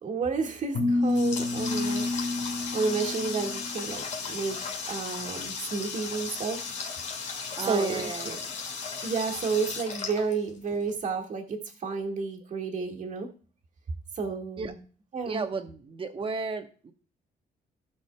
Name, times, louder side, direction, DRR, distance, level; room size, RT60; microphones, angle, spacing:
voice 1, 0.0-2.1 2.5-4.6 4.9-6.6 7.6-8.4 9.0-13.3 14.2-14.8 15.1-15.5, right 4 dB, 50° right, 1 dB, 1.8 m, -31 dB
sound 1, 0.7-3.9, left 2 dB, 90° left, 1.9 m, -29 dB
Water tap faucet, 0.7-10.9, left 5 dB, 45° left, 1.6 m, -36 dB
voice 2, 7.5-8.4 14.6-14.7 15.3-16.9, right 4 dB, 35° right, 7 dB, 1.1 m, -34 dB
16.0 x 6.1 x 2.3 m, 0.40 s
cardioid pair, 125°, 16 cm